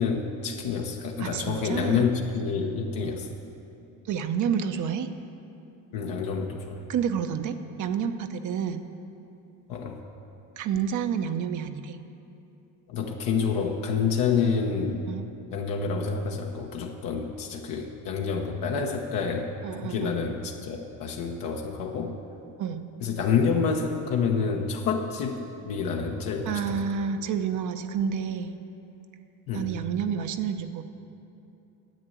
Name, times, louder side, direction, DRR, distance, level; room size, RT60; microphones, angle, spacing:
voice 1, 0.0-3.3 5.9-6.8 9.7-10.0 12.9-15.1 15.5-19.5 19.8-22.2 23.0-25.4 25.6-26.8 29.5-29.7, left 5 dB, 70° left, 1 dB, 1.1 m, -28 dB
voice 2, 1.2-2.0 4.1-5.1 6.9-8.8 10.6-12.0 15.1-15.2 19.6-20.2 22.6-22.8 26.5-28.5 29.5-30.8, right 7 dB, 55° right, 8 dB, 0.8 m, -29 dB
10.5 x 7.9 x 9.1 m, 2.9 s
cardioid pair, 115°, 35 cm